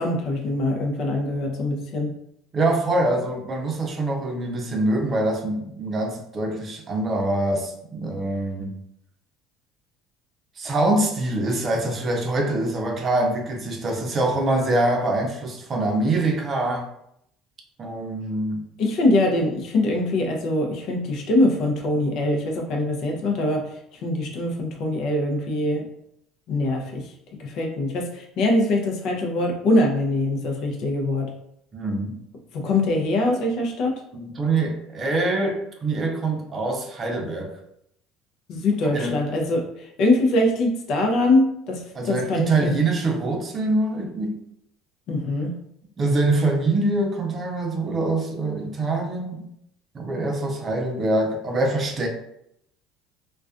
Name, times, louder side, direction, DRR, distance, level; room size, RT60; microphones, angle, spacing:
voice 1, 0.0-2.1 18.8-25.9 26.5-27.1 27.4-31.3 32.5-34.0 38.5-42.7 45.1-45.5, left 2 dB, 65° left, 1 dB, 0.6 m, -23 dB
voice 2, 2.5-8.8 10.6-16.9 17.8-18.7 31.7-32.2 34.1-37.6 38.9-39.2 41.9-44.4 46.0-49.5 49.9-52.1, right 2 dB, 40° right, 2 dB, 0.6 m, -24 dB
2.3 x 2.2 x 2.4 m, 0.75 s
supercardioid pair, 80°, 0 cm